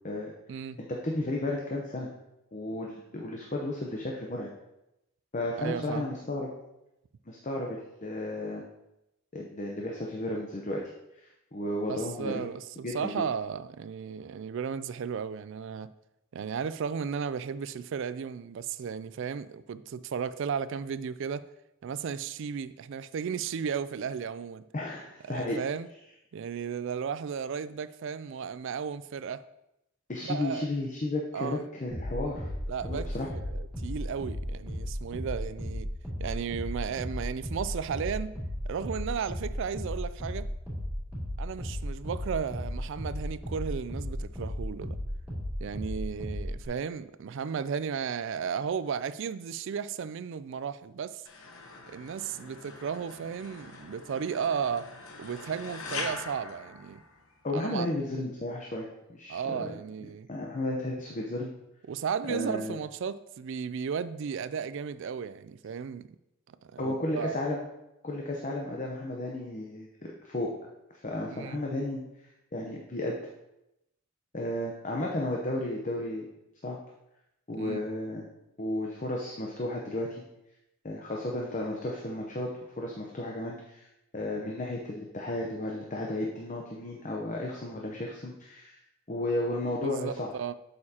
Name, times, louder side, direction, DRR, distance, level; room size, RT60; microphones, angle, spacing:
voice 1, 0.9-2.1 2.5-4.5 5.3-6.5 7.3-8.6 9.3-10.8 11.2-12.5 12.8-13.1 24.7-25.6 30.1-32.5 32.8-33.3 57.4-59.7 60.3-61.5 62.3-62.8 66.8-67.6 68.0-69.9 70.2-70.5 71.0-72.0 72.5-73.2 74.3-76.2 76.6-76.8 77.5-78.2 78.6-80.2 80.8-82.5 82.8-83.9 84.1-88.8 89.1-90.3, left 1 dB, 35° left, 0.8 m, -33 dB
voice 2, 5.6-6.1 11.9-15.9 16.3-21.4 21.8-24.6 25.3-25.9 26.3-29.4 30.2-30.7 31.3-31.6 32.7-35.9 36.2-38.3 38.7-40.5 41.4-45.0 45.6-51.2 51.9-54.9 55.2-57.0 57.5-57.9 59.3-60.3 61.9-66.1 66.5-67.4 71.3-71.6 77.5-77.8 89.8-90.5, right 7 dB, 60° right, 0.3 m, -34 dB
sound 1, 31.9-46.7, equal, 5° right, 2.7 m, -35 dB
sound 2, 51.2-57.5, left 3 dB, 75° left, 0.9 m, -42 dB
8.5 x 6.7 x 2.9 m
head